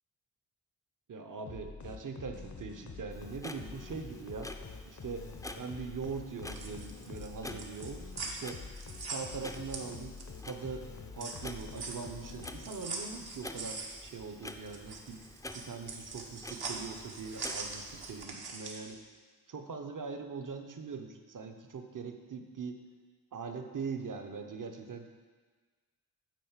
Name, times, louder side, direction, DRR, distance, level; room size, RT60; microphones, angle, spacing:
voice 1, 1.1-4.5 4.9-5.3 5.6-8.6 9.0-10.2 10.5-10.9 11.1-15.2 15.5-19.0 19.5-22.8 23.3-25.1, right 5 dB, 55° right, 5 dB, 0.9 m, -41 dB
sound 1, 1.5-13.1, left 5 dB, 50° left, 0.8 m, -47 dB
Clock, 3.1-18.3, left 1 dB, 10° left, 0.5 m, -49 dB
sound 2, 6.5-10.5 10.8-18.9, right 3 dB, 75° right, 1.3 m, -42 dB
9.2 x 4.4 x 7.2 m, 1.5 s
cardioid pair, 70°, 38 cm